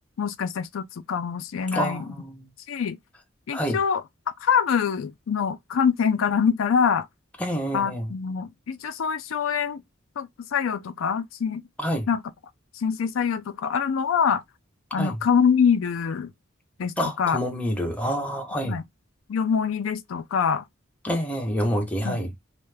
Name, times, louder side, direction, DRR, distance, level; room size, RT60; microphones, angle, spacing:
voice 1, 0.2-2.1 2.7-3.0 3.5-4.0 4.4-7.1 7.7-9.8 10.2-11.6 12.1-12.2 12.7-14.4 14.9-16.3 16.8-17.4 18.7-18.8 19.3-20.7 22.0-22.2, left 6 dB, 85° left, 0.4 m, -24 dB
voice 2, 1.7-2.5 3.5-3.8 7.4-8.1 11.8-12.1 15.0-15.2 17.0-18.8 21.0-22.3, equal, 5° left, 0.6 m, -27 dB
2.5 x 2.3 x 3.2 m
head